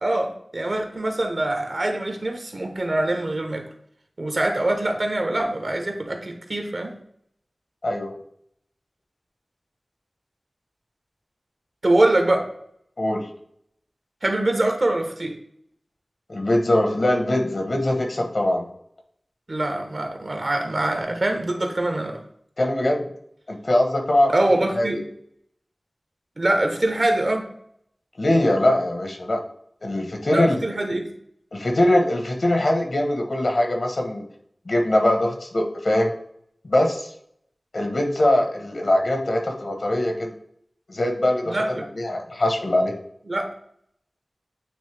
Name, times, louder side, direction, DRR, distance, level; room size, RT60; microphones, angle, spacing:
voice 1, 0.0-3.7 4.2-6.9 11.8-12.5 14.2-15.3 19.5-22.2 24.3-25.0 26.4-27.5 30.3-31.1 41.4-41.8 43.3-43.5, right 1 dB, 65° right, 4 dB, 1.2 m, -24 dB
voice 2, 7.8-8.1 13.0-13.3 16.3-18.7 22.6-23.1 23.5-24.3 24.8-24.9 28.2-29.4 29.8-30.6 31.5-34.2 34.6-36.1 36.6-37.1 37.7-40.3 40.9-41.6 41.9-42.9, left 1 dB, 75° left, 2 dB, 1.3 m, -22 dB
8.9 x 3.2 x 3.5 m, 0.69 s
wide cardioid pair, 55°, 0 cm